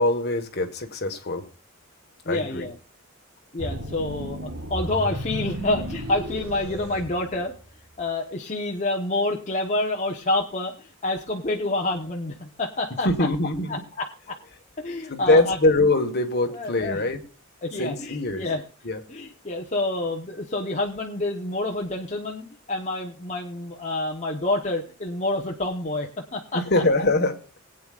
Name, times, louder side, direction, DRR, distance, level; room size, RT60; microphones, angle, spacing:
voice 1, 0.0-1.5 2.2-2.7 13.0-13.8 15.1-17.2 17.8-18.5 18.8-19.0 26.5-27.4, left 2 dB, 50° left, 6 dB, 1.6 m, -23 dB
voice 2, 2.2-2.7 3.5-7.5 8.0-13.1 13.7-14.4 14.8-15.6 16.5-17.0 17.6-18.6 19.1-26.6, left 2 dB, 35° left, 0 dB, 1.1 m, -28 dB
sound 1, 3.6-7.9, equal, 90° right, 3.8 m, -33 dB
21.0 x 9.0 x 2.5 m, 0.35 s
head